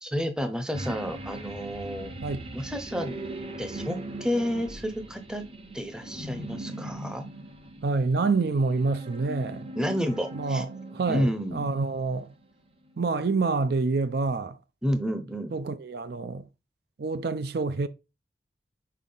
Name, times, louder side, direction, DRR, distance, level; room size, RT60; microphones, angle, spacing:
voice 1, 0.0-2.1 2.5-3.2 3.6-5.4 5.7-7.3 9.8-10.6 11.1-11.7 14.8-15.5, equal, 5° right, 0.7 m, -30 dB
sound 1, 0.7-12.5 12.9-13.0, right 1 dB, 30° right, 0.9 m, -40 dB
voice 2, 7.8-9.7 10.3-12.3 13.0-14.6 15.5-16.4 17.0-17.9, right 3 dB, 60° right, 0.4 m, -27 dB
5.7 x 4.5 x 3.8 m
head